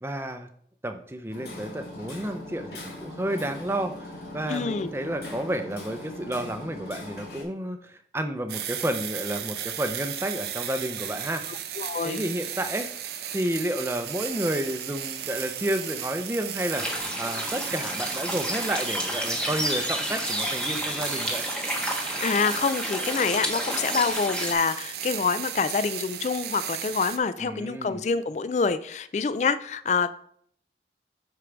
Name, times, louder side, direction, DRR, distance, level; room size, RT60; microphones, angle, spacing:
voice 1, 0.0-0.5 0.8-4.1 4.3-11.4 12.0-12.9 13.3-21.4 27.4-28.0, right 1 dB, 15° right, 7 dB, 0.6 m, -31 dB
Hammer, 1.3-7.4, left 1 dB, 65° left, 2.5 m, -40 dB
voice 2, 4.5-4.9 11.5-12.2 22.2-30.1, left 5 dB, 40° left, 14 dB, 0.3 m, -26 dB
sound 1, 8.5-27.2, right 10 dB, 65° right, 0.6 m, -35 dB
sound 2, 16.7-24.5, equal, 5° left, 1.0 m, -31 dB
6.6 x 4.6 x 5.1 m, 0.65 s
head